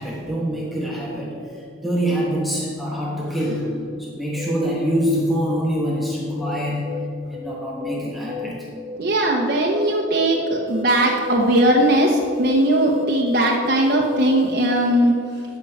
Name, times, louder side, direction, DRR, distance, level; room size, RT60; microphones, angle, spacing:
voice 1, 0.0-1.4 1.8-3.7 4.0-6.9 7.3-8.7, equal, ahead, -4 dB, 1.2 m, -25 dB
sound 1, 3.4-3.6 4.4-4.6 5.4-5.6 6.4-6.6 6.8-7.1 7.3-7.5 7.8-8.0 8.3-8.5 8.8-9.0 9.2-9.4 9.7-9.9 10.2-10.4 10.7-14.9, left 4 dB, 30° right, 1.2 m, -33 dB
voice 2, 9.0-15.1, right 1 dB, 50° right, -2 dB, 0.9 m, -19 dB
12.0 x 5.4 x 7.1 m, 2.3 s
head